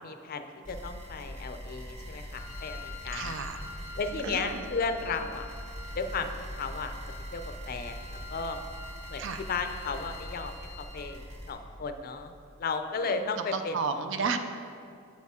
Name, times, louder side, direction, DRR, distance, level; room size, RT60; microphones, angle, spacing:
voice 1, 0.0-3.4 4.0-5.5 5.9-6.9 7.3-8.6 9.1-12.3 12.6-13.8, left 4 dB, 45° left, 8 dB, 0.4 m, -34 dB
sound 1, 0.6-11.5, equal, 35° right, 1.5 m, -42 dB
Wind instrument woodwind instrument, 2.3-11.2, left 2 dB, 85° left, 0.6 m, -47 dB
voice 2, 3.1-3.6 4.2-4.6 9.2-9.4 13.1-14.4, right 5 dB, 60° right, 8 dB, 0.5 m, -33 dB
8.2 x 6.4 x 3.6 m, 2.4 s
head